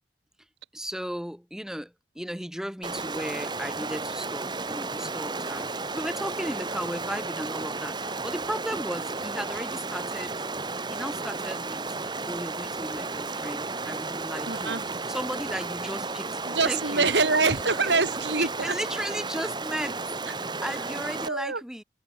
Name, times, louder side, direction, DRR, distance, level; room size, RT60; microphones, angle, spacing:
voice 1, 0.7-10.5 10.9-17.1 17.4-17.5 18.4-21.8, equal, 5° right, 2.2 m, -36 dB
Stream, 2.8-21.3, right 3 dB, 25° right, 1.8 m, -33 dB
voice 2, 14.5-14.8 16.4-18.7 20.7-20.8 21.3-21.6, right 4 dB, 80° right, 2.7 m, -25 dB
head